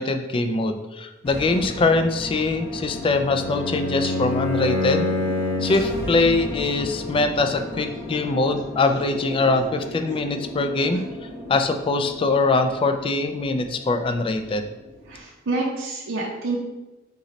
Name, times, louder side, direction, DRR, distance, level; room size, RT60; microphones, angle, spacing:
voice 1, 0.0-5.1 5.6-11.0 11.5-14.6, left 3 dB, 25° left, 7 dB, 0.3 m, -22 dB
sound 1, 1.2-15.2, left 1 dB, 10° right, 1.0 m, -36 dB
Bowed string instrument, 2.7-5.9, left 2 dB, 85° left, 1.0 m, -26 dB
voice 2, 15.1-16.6, right 3 dB, 75° right, -2 dB, 0.6 m, -28 dB
3.9 x 3.0 x 3.9 m, 1.1 s
head